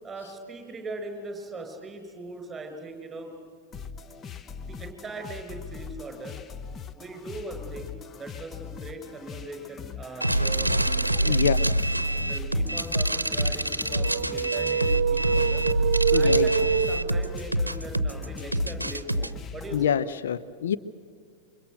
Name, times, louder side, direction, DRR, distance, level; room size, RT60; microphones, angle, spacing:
voice 1, 0.0-3.3 4.6-6.4 6.9-11.6 12.1-15.6 16.1-20.0, right 2 dB, 15° right, 5 dB, 5.8 m, -40 dB
sound 1, 3.7-19.9, left 7 dB, 25° left, 0.8 m, -41 dB
sound 2, 10.2-19.3, right 1 dB, 85° right, 0.8 m, -26 dB
voice 2, 11.2-11.6 16.1-16.5 19.7-20.8, left 9 dB, 60° left, 12 dB, 0.6 m, -25 dB
sound 3, 13.9-17.5, right 8 dB, 55° right, 0.9 m, -26 dB
28.5 x 24.5 x 6.6 m, 2.1 s
figure-of-eight pair, 90°, 0 cm